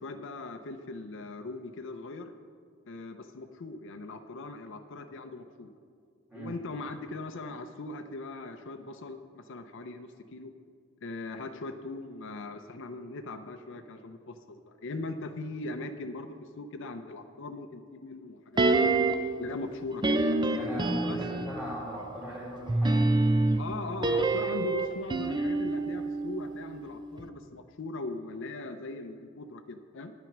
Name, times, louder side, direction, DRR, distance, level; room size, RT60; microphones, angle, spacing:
voice 1, 0.0-2.3 2.9-5.7 6.3-10.5 11.0-19.1 19.4-20.2 21.1-21.2 23.6-30.1, left 2 dB, 65° left, 7 dB, 0.6 m, -40 dB
sound 1, 18.6-19.4 20.0-21.7 22.7-26.9 27.2-27.3, right 2 dB, 20° right, 0.5 m, -27 dB
voice 2, 20.5-23.1, right 1 dB, 5° right, -7 dB, 2.3 m, -38 dB
9.9 x 9.2 x 5.9 m, 2.1 s
head